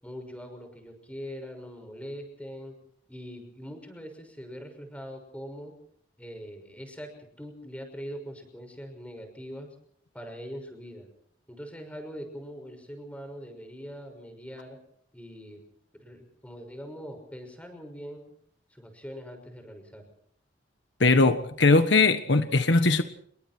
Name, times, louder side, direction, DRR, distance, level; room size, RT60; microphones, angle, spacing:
voice 1, 0.0-2.7 3.1-5.7 6.2-7.1 7.4-9.7 10.1-11.1 11.5-14.8 15.1-15.6 16.0-18.2 18.7-20.0, equal, 5° left, 6.1 m, -42 dB
voice 2, 21.0-23.0, left 3 dB, 65° left, 1.4 m, -20 dB
28.0 x 23.0 x 4.5 m
head